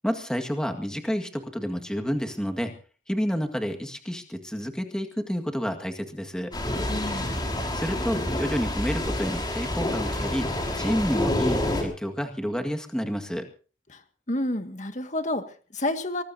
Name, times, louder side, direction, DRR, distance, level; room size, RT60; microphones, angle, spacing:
voice 1, 0.0-2.7 3.1-6.5 7.7-10.5 10.8-13.5, equal, 5° left, 4 dB, 1.8 m, -29 dB
sound 1, 6.5-11.8, left 1 dB, 25° left, 5.2 m, -28 dB
voice 2, 6.9-7.4 13.9-14.0 14.3-16.2, left 1 dB, 40° left, 7 dB, 1.9 m, -30 dB
24.0 x 19.5 x 2.8 m, 0.38 s
head